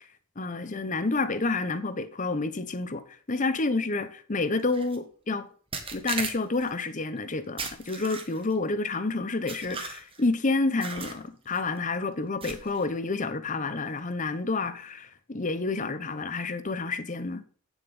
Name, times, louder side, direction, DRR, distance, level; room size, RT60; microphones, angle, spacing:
voice 1, 0.4-5.5 5.9-17.4, left 3 dB, 35° left, 0.9 m, -29 dB
sound 1, 4.7-5.0 5.7-6.7 7.6-8.5 9.5-10.3 10.8-11.2 11.5-11.8 12.4-12.8, right 5 dB, 25° right, 1.5 m, -37 dB
9.2 x 7.2 x 5.4 m
head